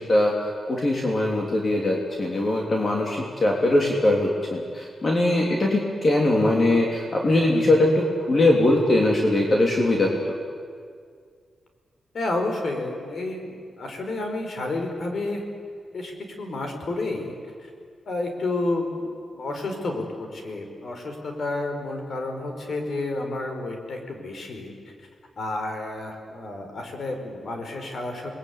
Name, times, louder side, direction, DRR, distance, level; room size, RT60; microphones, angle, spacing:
voice 1, 0.0-10.2, left 1 dB, 35° left, -1 dB, 3.4 m, -21 dB
voice 2, 12.1-15.4 15.9-17.3 17.6-17.7 18.0-19.1 19.3-24.9 25.4-28.3, left 2 dB, 55° left, 4 dB, 5.0 m, -30 dB
28.0 x 21.0 x 9.7 m, 2.1 s
wide cardioid pair, 130°, 0 cm